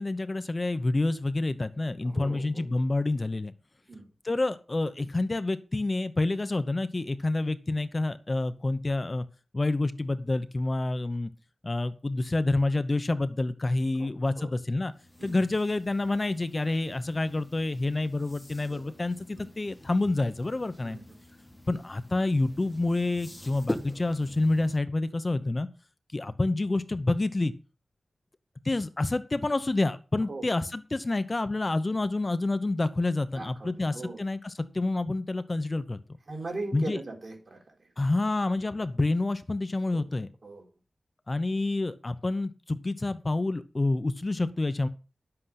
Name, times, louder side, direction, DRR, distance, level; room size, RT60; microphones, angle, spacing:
voice 1, 0.0-3.5 4.2-9.2 9.5-11.3 11.6-14.9 15.2-21.0 21.7-25.7 26.1-27.5 28.6-36.0 36.7-37.0 38.0-40.3 41.3-44.9, left 2 dB, 35° left, 13 dB, 0.8 m, -28 dB
voice 2, 2.1-2.6 3.9-4.1 14.0-14.1 14.4-14.5 15.2-15.4 18.6-18.8 19.3-19.5 20.8-21.0 30.3-30.4 33.4-34.2 36.3-37.6 39.9-40.0 40.4-40.7, right 2 dB, 50° right, 2 dB, 3.7 m, -39 dB
sound 1, 14.9-24.8, left 1 dB, 15° left, 1.7 m, -44 dB
11.5 x 7.8 x 5.8 m, 0.34 s
wide cardioid pair, 100°, 0 cm